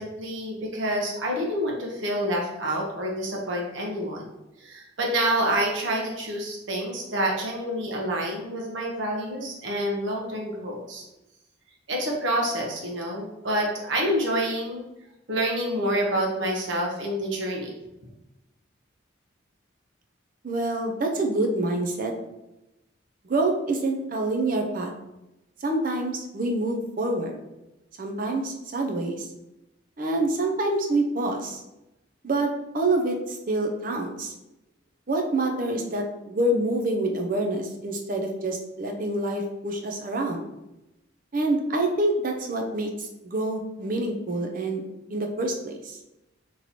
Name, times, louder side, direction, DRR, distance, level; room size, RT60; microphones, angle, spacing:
voice 1, 0.0-4.3 4.6-11.0 11.9-14.8 15.3-17.7, right 1 dB, 70° right, -1 dB, 1.0 m, -28 dB
voice 2, 20.4-22.1 23.2-24.9 25.6-27.3 28.0-29.3 30.0-31.6 32.2-34.3 35.1-40.4 41.3-44.8 45.1-46.0, right 2 dB, 45° right, 2 dB, 0.5 m, -27 dB
3.1 x 2.9 x 4.0 m, 0.95 s
head